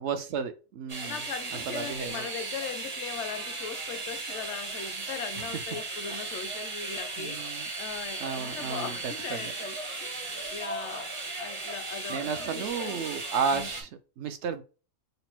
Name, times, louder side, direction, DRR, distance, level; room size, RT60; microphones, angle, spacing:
voice 1, 0.0-1.2 1.7-2.3 5.4-5.5 6.1-6.2 7.2-7.7 8.2-9.5 12.1-13.9 14.2-14.6, right 6 dB, 70° right, 0.8 m, -33 dB
sound 1, 0.9-13.8, right 3 dB, 30° right, 0.7 m, -36 dB
voice 2, 1.0-13.0 13.5-13.7, left 7 dB, 70° left, 0.8 m, -40 dB
4.0 x 2.1 x 4.3 m
omnidirectional pair, 1.3 m